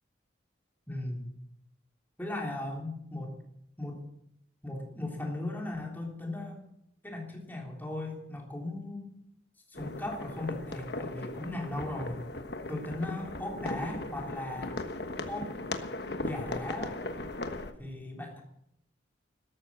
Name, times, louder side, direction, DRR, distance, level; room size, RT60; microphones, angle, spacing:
voice 1, 0.9-1.4 2.2-3.4 3.8-4.0 4.6-6.6 7.0-9.1 9.7-12.2 12.7-14.8 15.3-15.6 16.2-17.0 17.8-18.4, left 1 dB, 10° left, 0 dB, 3.4 m, -37 dB
sound 1, 9.7-17.7, left 2 dB, 60° left, 1.3 m, -38 dB
13.5 x 13.0 x 7.5 m, 0.75 s
head